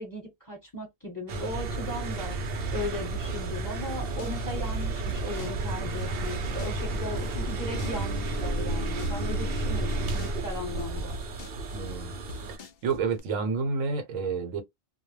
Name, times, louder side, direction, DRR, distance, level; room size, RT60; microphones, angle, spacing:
voice 1, 0.0-11.2, left 1 dB, 15° left, 1.0 m, -37 dB
sound 1, 1.3-12.6, right 2 dB, 60° right, 0.7 m, -31 dB
sound 2, 3.6-13.2, left 3 dB, 65° left, 0.4 m, -44 dB
voice 2, 11.7-12.1 12.8-14.6, right 5 dB, 80° right, 1.1 m, -29 dB
2.3 x 2.0 x 3.1 m
omnidirectional pair, 1.3 m